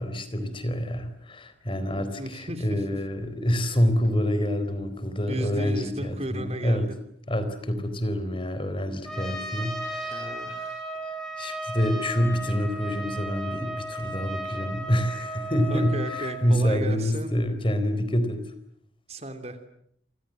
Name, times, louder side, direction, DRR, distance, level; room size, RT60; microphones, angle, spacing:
voice 1, 0.0-6.9 7.3-10.3 11.4-18.4, equal, 30° left, 11 dB, 4.2 m, -27 dB
voice 2, 2.2-2.8 5.3-6.9 10.0-10.9 15.7-17.5 19.1-19.6, right 1 dB, 35° right, 9 dB, 2.9 m, -35 dB
Trumpet, 9.1-16.4, right 1 dB, 5° left, 7.7 m, -35 dB
28.5 x 26.5 x 7.7 m, 0.69 s
head